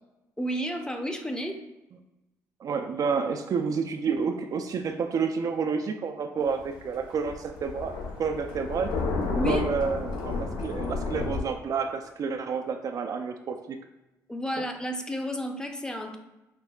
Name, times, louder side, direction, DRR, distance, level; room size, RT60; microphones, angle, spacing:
voice 1, 0.4-1.6 9.3-9.7 14.3-16.2, equal, 10° left, 4 dB, 0.6 m, -31 dB
voice 2, 2.6-8.9 9.4-13.8, right 5 dB, 50° right, 6 dB, 0.3 m, -29 dB
Thunder, 6.4-11.4, left 3 dB, 80° left, 0.6 m, -31 dB
5.7 x 2.0 x 2.3 m, 0.98 s
supercardioid pair, 60°, 8 cm